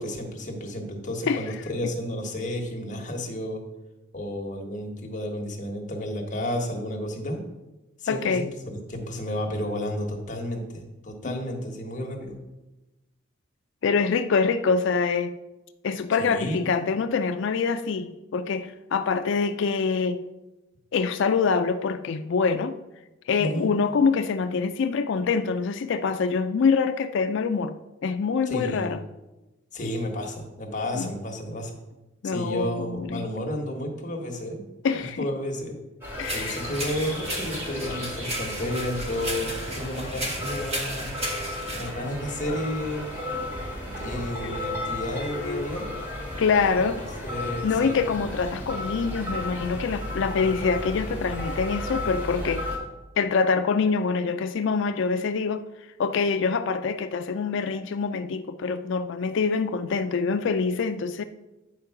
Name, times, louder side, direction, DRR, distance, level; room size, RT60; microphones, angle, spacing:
voice 1, 0.0-3.6 4.1-7.4 8.0-8.5 8.9-12.4 16.2-16.6 23.4-23.7 28.5-28.9 29.7-31.8 32.2-34.6 35.0-35.7 36.3-41.1 41.7-43.2 44.0-45.9 47.2-48.0, left 1 dB, 40° left, 1.4 m, -32 dB
voice 2, 8.1-8.5 11.3-11.4 13.8-15.3 15.8-20.2 20.9-22.8 23.3-27.7 28.0-29.0 30.9-31.2 32.2-33.3 34.8-35.3 36.2-36.6 44.4-44.8 45.3-45.7 46.4-47.0 47.6-52.7 53.2-55.6 56.0-61.2, left 5 dB, 65° left, 0.4 m, -25 dB
sound 1, 36.0-52.8, left 1 dB, 10° right, 2.7 m, -34 dB
sound 2, 36.2-41.9, right 1 dB, 30° right, 1.7 m, -34 dB
9.0 x 4.5 x 5.8 m
head